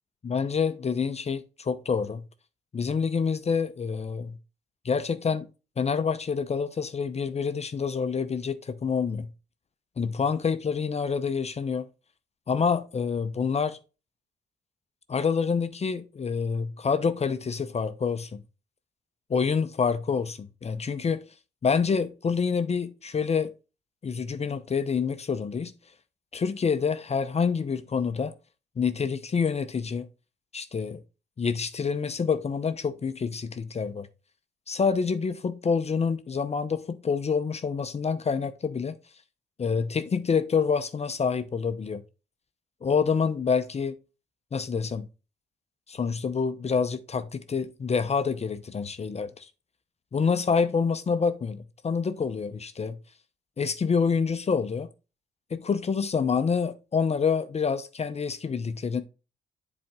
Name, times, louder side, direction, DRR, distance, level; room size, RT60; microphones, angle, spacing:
voice 1, 0.2-2.2 2.7-4.4 4.8-5.5 5.8-9.3 10.0-11.9 12.5-13.8 15.1-18.3 19.3-21.2 21.6-23.5 24.0-25.7 26.3-28.3 28.8-30.1 30.5-31.0 31.4-34.1 34.7-39.0 39.6-42.0 42.8-44.0 44.5-45.1 45.9-49.5 50.1-53.0 53.6-54.9 55.5-59.0, left 5 dB, 35° left, 0.7 m, -27 dB
7.7 x 4.3 x 3.7 m
supercardioid pair, 60°, 19 cm